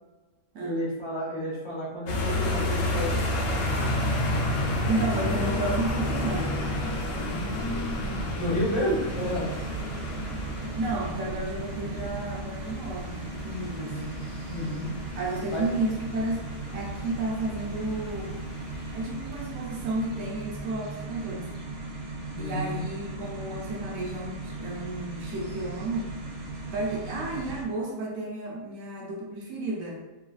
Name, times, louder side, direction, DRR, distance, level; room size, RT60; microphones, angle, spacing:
voice 1, 0.6-3.2 7.1-9.5 13.7-14.1 14.5-14.9 15.5-15.6 22.3-22.8, left 1 dB, 40° left, -6 dB, 0.4 m, -31 dB
sound 1, 2.1-20.6, left 1 dB, 75° left, 1.0 m, -31 dB
voice 2, 4.7-6.6 10.6-13.9 15.2-16.5 16.7-18.4 18.9-21.5 22.4-26.1 26.7-30.0, right 2 dB, 65° right, -2 dB, 0.9 m, -32 dB
sound 2, 9.1-27.6, right 2 dB, 85° right, 1.2 m, -38 dB
3.2 x 2.3 x 2.3 m, 1.1 s
omnidirectional pair, 1.6 m